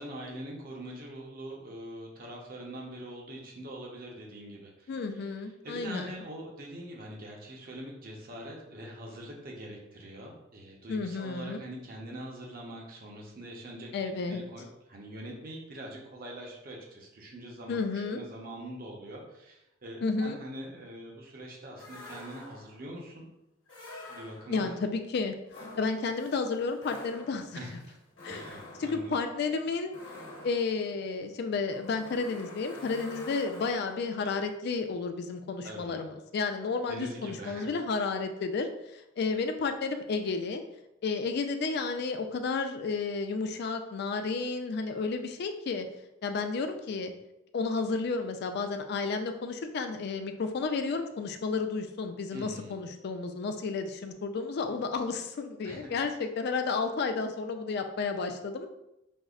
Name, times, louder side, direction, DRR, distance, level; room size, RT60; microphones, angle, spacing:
voice 1, 0.0-5.4 5.6-13.9 14.3-23.3 24.1-24.7 27.5-28.0 28.3-29.1 35.6-36.0 36.9-37.7 52.3-52.8 55.6-56.0, right 1 dB, 50° right, -1 dB, 0.7 m, -43 dB
voice 2, 4.9-6.1 10.9-11.6 13.9-14.4 17.7-18.2 20.0-20.4 24.5-25.3 25.8-27.8 28.2-28.4 28.8-29.9 30.4-38.7 39.2-40.6 41.0-45.9 46.2-47.1 47.5-58.7, left 4 dB, 55° left, 7 dB, 0.4 m, -32 dB
sound 1, 21.8-22.9 23.7-24.7 25.5-34.2, left 1 dB, 75° left, 1.1 m, -47 dB
5.2 x 2.0 x 2.4 m, 0.87 s
head